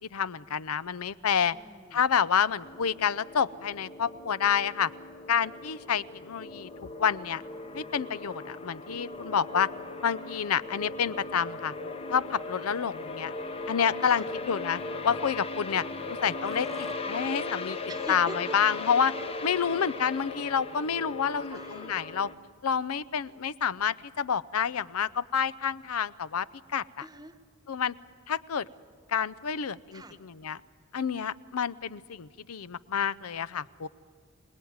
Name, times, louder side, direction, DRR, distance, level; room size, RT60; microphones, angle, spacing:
voice 1, 0.1-1.6 1.9-4.9 5.3-6.7 7.0-7.4 7.7-9.7 10.0-11.7 12.1-13.3 13.7-15.8 16.2-17.8 18.1-19.2 19.4-22.3 22.6-27.0 27.7-27.9 28.3-28.7 29.1-30.6 30.9-33.9, left 7 dB, 85° left, 18 dB, 0.6 m, -28 dB
voice 2, 1.5-2.0 14.0-14.3 17.9-18.6 19.6-19.9 21.5-22.0 27.0-27.4 29.9-30.2, right 1 dB, 20° right, 10 dB, 1.1 m, -43 dB
sound 1, 2.6-22.3, left 3 dB, 25° left, 0.9 m, -38 dB
Burping eructation, 16.2-17.0, left 1 dB, ahead, 0.7 m, -42 dB
26.0 x 18.5 x 9.5 m, 2.3 s
head